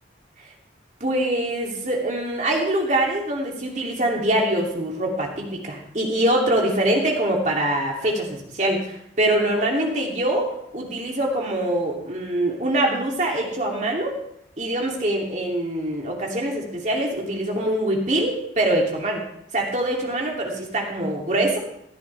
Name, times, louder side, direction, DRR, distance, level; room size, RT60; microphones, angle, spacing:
voice 1, 1.0-14.1 14.6-19.2 19.5-21.6, right 1 dB, 40° right, -1 dB, 2.7 m, -24 dB
16.5 x 12.0 x 3.3 m, 0.75 s
head